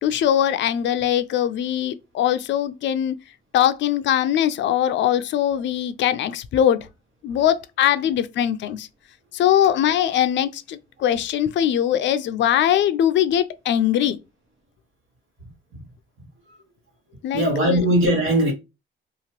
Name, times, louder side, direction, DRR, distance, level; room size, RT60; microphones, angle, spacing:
voice 1, 0.0-3.1 3.5-6.9 7.2-8.9 9.3-14.2 17.2-17.5 17.7-17.8, left 10 dB, 65° left, 0.4 m, -21 dB
voice 2, 17.3-18.5, right 1 dB, 85° right, 1.3 m, -19 dB
2.9 x 2.4 x 2.9 m
cardioid pair, 90°, 20 cm